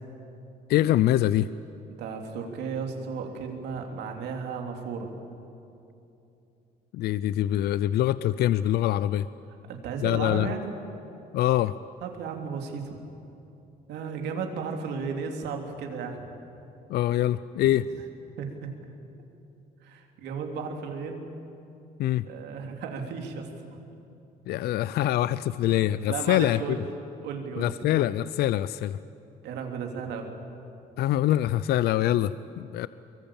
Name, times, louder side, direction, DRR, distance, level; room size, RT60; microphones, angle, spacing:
voice 1, 0.7-1.5 6.9-9.3 10.0-10.5 11.3-11.7 16.9-17.8 22.0-22.2 24.5-26.8 27.6-29.0 31.0-32.9, left 13 dB, 70° left, 16 dB, 0.5 m, -24 dB
voice 2, 1.9-5.1 9.7-10.7 12.0-13.0 13.9-16.2 18.4-18.7 19.8-21.3 22.2-23.5 26.1-26.8 27.2-27.7 29.4-30.3, right 5 dB, 80° right, 3 dB, 3.3 m, -34 dB
24.0 x 22.5 x 8.9 m, 2.8 s
cardioid pair, 110°, 17 cm